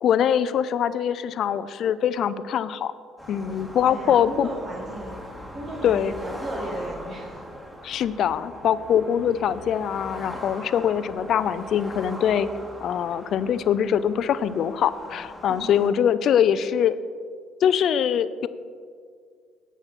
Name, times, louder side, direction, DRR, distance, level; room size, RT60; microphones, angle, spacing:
voice 1, 0.0-2.9 3.3-4.5 5.8-6.1 7.8-12.5 12.8-17.0 17.6-18.5, left 9 dB, 60° left, 14 dB, 0.5 m, -23 dB
sound 1, 3.2-15.9, equal, 10° right, 2.5 m, -41 dB
voice 2, 3.8-7.4 15.5-15.9, right 1 dB, 45° right, -3 dB, 1.8 m, -36 dB
17.0 x 6.1 x 4.2 m, 2.1 s
hypercardioid pair, 60°, 0 cm